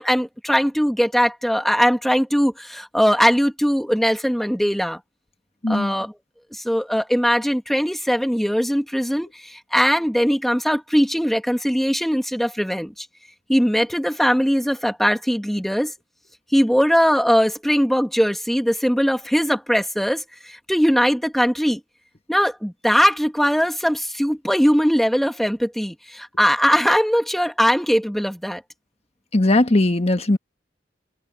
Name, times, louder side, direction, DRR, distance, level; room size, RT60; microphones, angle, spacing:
voice 1, 0.0-5.0 5.7-6.1 6.5-13.1 13.5-15.9 16.5-21.8 22.3-28.6, equal, ahead, 2.1 m, -20 dB
voice 2, 29.3-30.4, left 2 dB, 35° left, 1.4 m, -18 dB
head